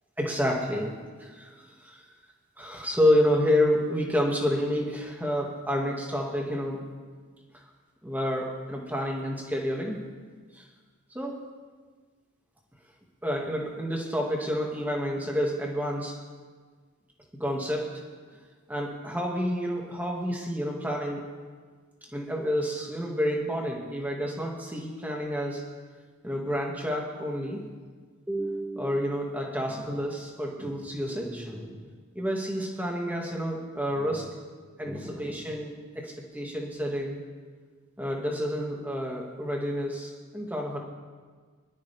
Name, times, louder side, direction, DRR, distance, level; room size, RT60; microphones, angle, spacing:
voice 1, 0.2-0.9 1.2-1.5 1.8-2.0 2.6-6.9 8.0-10.0 10.5-10.6 11.1-11.4 13.2-16.2 17.4-18.0 18.7-21.2 22.1-25.6 26.2-27.6 28.3-31.8 32.2-34.3 34.8-37.2 38.0-40.8, equal, 10° right, -1 dB, 1.9 m, -29 dB
23.0 x 12.0 x 3.4 m, 1.5 s
head